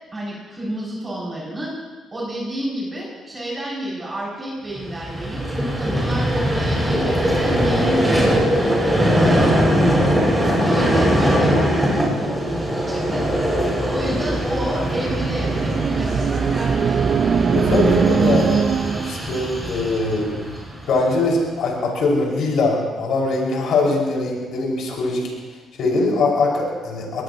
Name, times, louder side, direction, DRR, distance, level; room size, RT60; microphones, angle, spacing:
voice 1, 0.1-1.7 2.1-9.5 10.6-13.3 13.9-17.0, right 1 dB, 20° right, -6 dB, 7.4 m, -30 dB
Vehicle, 4.8-21.1, equal, 5° right, 6.4 m, -21 dB
sound 1, 14.6-19.2, right 6 dB, 55° right, 0.5 m, -21 dB
voice 2, 17.5-18.6 19.0-20.6 20.9-25.3 25.8-27.2, left 2 dB, 75° left, -2 dB, 5.7 m, -21 dB
24.0 x 19.0 x 3.1 m, 1.3 s
cardioid pair, 90°, 0 cm